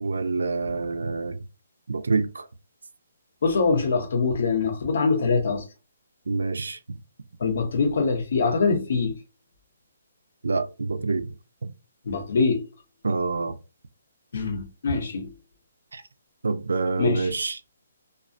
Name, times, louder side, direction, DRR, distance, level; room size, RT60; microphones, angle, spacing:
voice 1, 0.0-1.4 1.9-2.5 6.3-7.0 10.4-11.3 11.6-11.7 13.0-13.6 15.9-16.0 16.4-17.6, right 4 dB, 90° right, 0.4 m, -27 dB
voice 2, 3.4-5.6 7.4-9.1 12.1-12.6 14.3-15.3 17.0-17.3, left 4 dB, 65° left, 0.8 m, -23 dB
2.3 x 2.1 x 2.5 m
hypercardioid pair, 155°, 0 cm